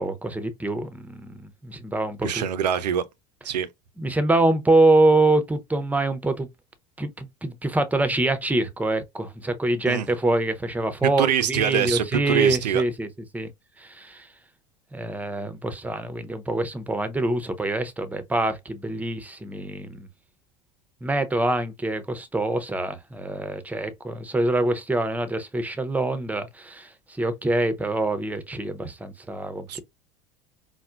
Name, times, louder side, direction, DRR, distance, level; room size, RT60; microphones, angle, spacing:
voice 1, 0.0-2.4 4.0-6.5 7.0-13.1 13.3-13.5 13.8-14.3 14.9-20.1 21.0-26.9 27.2-29.8, right 2 dB, 5° right, 0.6 m, -25 dB
voice 2, 2.2-3.1 3.4-3.7 9.9-10.1 11.0-12.8 29.7-29.8, right 9 dB, 85° right, 0.5 m, -24 dB
4.2 x 2.1 x 2.3 m
hypercardioid pair, 80°, 21 cm